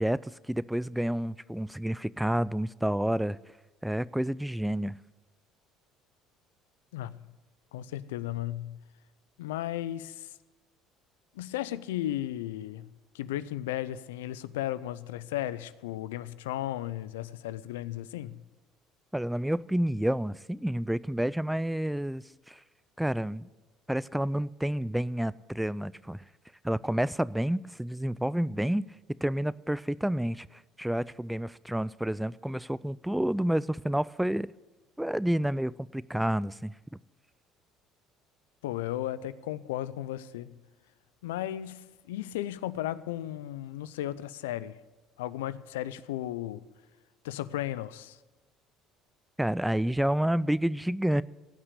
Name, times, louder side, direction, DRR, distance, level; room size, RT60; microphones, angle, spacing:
voice 1, 0.0-3.4 3.8-5.0 19.1-22.6 23.0-23.5 23.9-26.2 26.6-28.9 29.2-34.5 35.0-36.7 49.4-51.2, right 1 dB, 5° right, 0.3 m, -29 dB
voice 2, 6.9-7.2 7.7-8.8 9.4-10.3 11.4-12.9 13.1-18.4 38.6-40.6 41.2-44.8 45.2-46.6 47.2-48.2, left 13 dB, 85° left, 0.4 m, -35 dB
16.0 x 5.8 x 8.2 m
hypercardioid pair, 70°, 0 cm